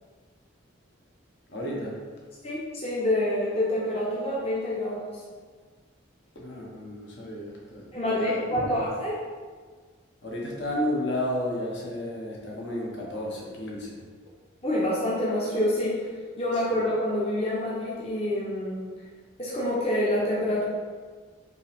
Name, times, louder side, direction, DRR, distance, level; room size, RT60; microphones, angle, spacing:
voice 1, 1.5-2.0 6.3-8.9 10.2-14.0, left 1 dB, 60° left, -3 dB, 0.9 m, -32 dB
voice 2, 2.4-5.2 7.9-9.1 14.6-16.0 16.4-18.8 19.4-20.6, left 1 dB, 30° left, -7 dB, 0.7 m, -27 dB
5.2 x 2.6 x 3.4 m, 1.5 s
head